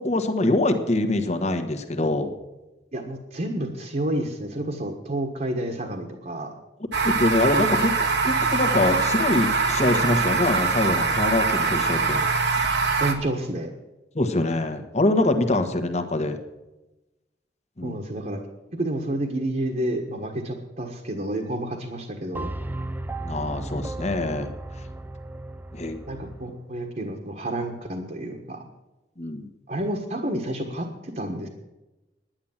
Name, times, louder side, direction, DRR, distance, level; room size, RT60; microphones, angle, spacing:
voice 1, 0.0-2.3 7.0-12.3 14.1-16.4 17.8-18.0 23.2-24.5 25.7-26.0 29.2-29.5, left 2 dB, 40° left, 6 dB, 1.4 m, -24 dB
voice 2, 2.9-6.5 13.0-13.7 17.8-18.4 18.7-22.5 26.1-28.6 29.7-31.5, right 1 dB, 50° right, 1 dB, 1.5 m, -30 dB
sound 1, 6.9-13.1, right 4 dB, 80° right, 1.5 m, -23 dB
sound 2, 22.3-26.6, right 2 dB, 10° right, 0.5 m, -35 dB
10.5 x 10.5 x 7.3 m, 1.0 s
head